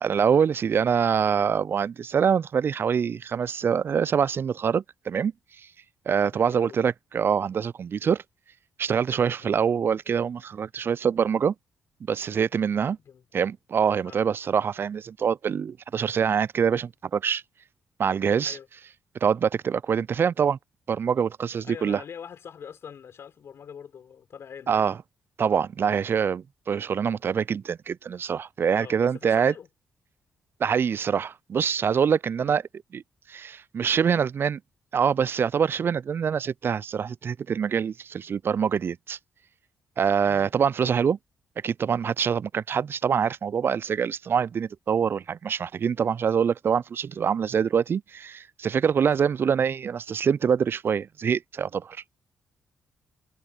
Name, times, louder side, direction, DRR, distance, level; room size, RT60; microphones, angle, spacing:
voice 1, 0.0-5.3 6.1-8.2 8.8-11.5 12.1-13.0 13.3-17.4 18.0-18.6 19.2-20.6 20.9-22.0 24.7-25.0 25.4-29.5 30.6-32.6 32.9-33.0 33.3-34.6 34.9-39.2 40.0-41.2 41.6-52.0, right 7 dB, 50° right, 0.4 m, -25 dB
voice 2, 6.3-6.8 9.4-9.5 13.0-13.2 14.0-14.2 18.4-18.7 21.6-24.9 28.7-29.7 32.4-32.6 40.2-40.5 49.0-49.3, left 7 dB, 60° left, 5.4 m, -43 dB
hypercardioid pair, 45°, 5 cm